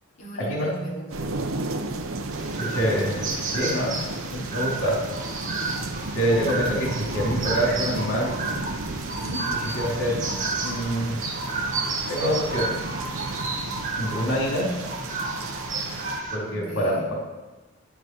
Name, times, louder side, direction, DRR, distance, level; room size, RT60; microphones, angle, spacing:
voice 1, 0.2-1.3 9.2-9.5 14.5-14.8 16.5-17.0, equal, 35° left, -6 dB, 3.5 m, -36 dB
sound 1, 1.1-16.2, right 2 dB, 80° right, 1.0 m, -33 dB
sound 2, 2.3-16.4, right 3 dB, 40° right, 2.0 m, -32 dB
voice 2, 2.7-3.1 3.5-4.0 4.3-4.9 6.1-8.3 9.7-10.1 10.6-11.2 12.1-12.8 14.0-14.6 16.3-17.1, equal, 75° left, -3 dB, 3.5 m, -25 dB
11.5 x 9.9 x 6.2 m, 1.2 s
head